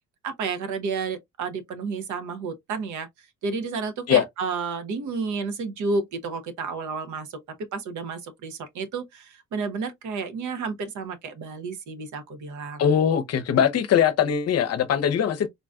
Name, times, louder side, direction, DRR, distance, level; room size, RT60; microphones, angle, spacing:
voice 1, 0.2-3.1 3.4-7.4 7.7-12.8, right 4 dB, 75° right, 0.8 m, -31 dB
voice 2, 12.8-15.5, left 8 dB, 55° left, 0.6 m, -21 dB
3.8 x 2.5 x 2.2 m
cardioid pair, 90°, 30 cm